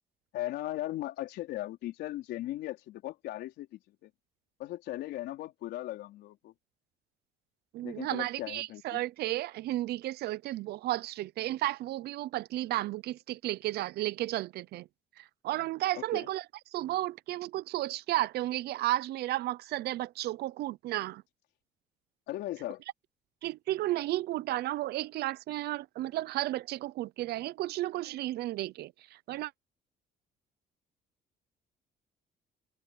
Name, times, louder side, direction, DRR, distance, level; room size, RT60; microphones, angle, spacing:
voice 1, 0.3-4.1 4.6-6.5 7.8-9.0 15.9-16.3 22.3-22.8, left 15 dB, 80° left, 4.4 m, -38 dB
voice 2, 7.7-14.9 15.2-16.4 16.7-21.2 23.4-29.5, right 16 dB, 70° right, 0.7 m, -33 dB
cardioid pair, 110°, 17 cm